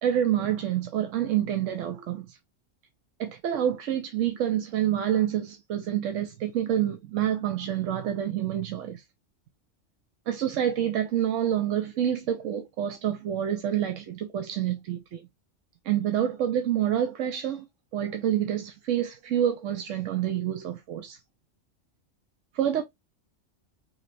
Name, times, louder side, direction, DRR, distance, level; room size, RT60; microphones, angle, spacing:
voice 1, 0.0-2.4 3.2-9.0 10.3-15.2 15.8-17.7 17.9-21.2 22.5-22.8, right 10 dB, 80° right, 1.0 m, -27 dB
5.0 x 3.2 x 2.7 m
omnidirectional pair, 1.3 m